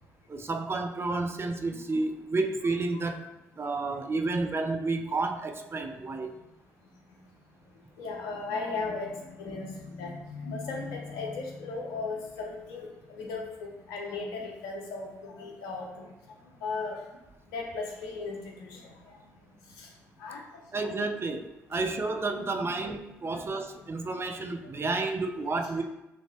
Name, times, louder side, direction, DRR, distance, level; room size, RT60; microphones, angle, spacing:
voice 1, 0.3-3.2 3.6-6.3 20.7-25.8, right 3 dB, 35° right, 5 dB, 0.6 m, -31 dB
voice 2, 8.0-16.1 16.6-17.0 17.5-19.2 19.8-19.9 20.2-21.0 21.7-21.8 22.3-22.4 23.2-23.4 23.8-23.9, left 3 dB, 80° left, 0 dB, 0.9 m, -37 dB
6.2 x 2.8 x 3.0 m, 0.92 s
hypercardioid pair, 45°, 7 cm